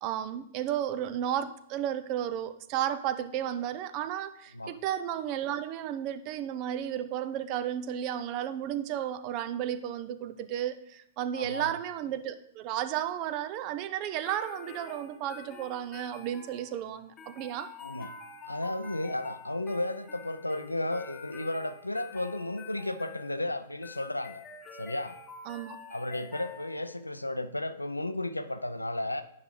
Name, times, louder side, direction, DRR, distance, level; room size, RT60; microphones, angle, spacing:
voice 1, 0.0-17.7 25.5-25.8, right 10 dB, 40° right, 13 dB, 0.4 m, -33 dB
voice 2, 11.3-11.7 17.8-18.1 18.4-24.4 24.7-25.2 25.9-29.2, left 1 dB, 90° left, 11 dB, 0.4 m, -33 dB
sound 1, 14.2-27.0, left 4 dB, 20° left, 0.8 m, -48 dB
9.6 x 4.8 x 3.1 m, 0.73 s
figure-of-eight pair, 105°, 0 cm